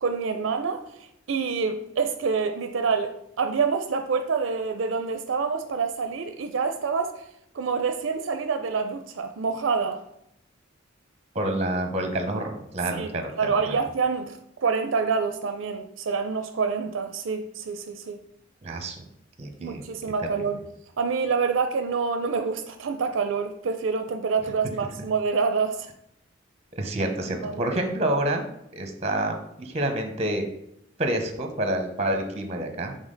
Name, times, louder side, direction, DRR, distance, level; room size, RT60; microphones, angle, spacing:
voice 1, 0.0-7.2 7.5-10.0 12.9-13.1 13.4-18.2 19.6-20.6 21.0-25.9 27.0-27.1 27.4-27.7, right 5 dB, 75° right, 0.4 m, -27 dB
voice 2, 11.3-13.8 18.6-19.0 19.4-19.8 20.2-20.4 26.7-28.4 28.7-30.4 31.0-32.9, right 1 dB, 35° right, 0.9 m, -28 dB
7.2 x 3.8 x 3.9 m
head